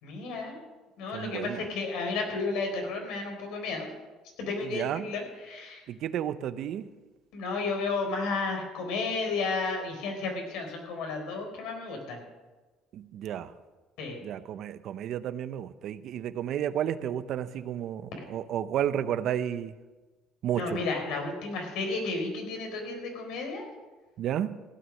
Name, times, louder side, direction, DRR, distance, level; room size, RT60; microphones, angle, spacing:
voice 1, 0.0-0.6 1.0-3.9 4.4-5.8 7.3-12.2 14.0-14.2 20.6-23.7, left 3 dB, 75° left, 3 dB, 4.1 m, -32 dB
voice 2, 1.1-1.6 4.6-5.1 5.9-6.9 12.9-13.5 14.2-19.7 20.4-20.8 24.2-24.6, right 10 dB, 55° right, 13 dB, 0.7 m, -32 dB
16.0 x 9.5 x 6.4 m, 1.2 s
cardioid pair, 130°, 0 cm